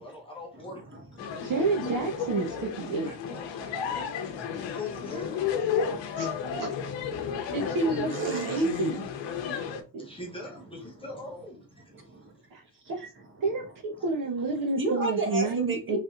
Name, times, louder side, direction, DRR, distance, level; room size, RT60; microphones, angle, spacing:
voice 1, 0.0-1.2 3.0-3.9 4.7-5.5 7.8-7.9 8.5-8.6 10.0-11.8, left 3 dB, 15° left, 0.8 m, -42 dB
voice 2, 0.5-1.0 1.3-1.5 2.2-3.1 3.4-4.8 5.4-6.2 6.9-7.7 8.1-8.7 9.7-10.2 11.9-12.4 12.7-13.7 14.8-16.0, right 2 dB, 30° right, 1.1 m, -37 dB
sound 1, 1.2-9.8, left 7 dB, 90° left, 0.9 m, -33 dB
voice 3, 1.4-3.1 6.2-6.7 7.5-9.1 9.9-10.0 12.5-12.6 12.9-13.0 13.4-16.0, right 3 dB, 50° right, 0.9 m, -29 dB
4.2 x 3.4 x 2.4 m
cardioid pair, 165°, 43 cm